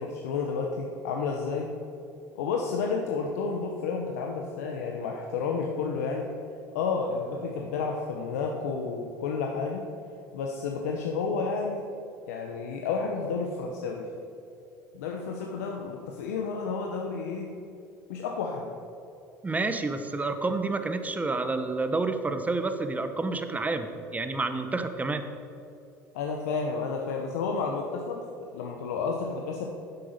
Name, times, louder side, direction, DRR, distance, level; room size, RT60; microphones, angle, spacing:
voice 1, 0.0-1.7 2.3-6.3 6.7-9.8 10.3-11.8 12.3-14.1 14.9-17.5 18.1-18.7 26.1-29.7, left 4 dB, 90° left, 1 dB, 1.0 m, -31 dB
voice 2, 19.4-25.2, right 3 dB, 20° right, 8 dB, 1.1 m, -29 dB
10.0 x 7.8 x 6.6 m, 2.6 s
supercardioid pair, 85°, 8 cm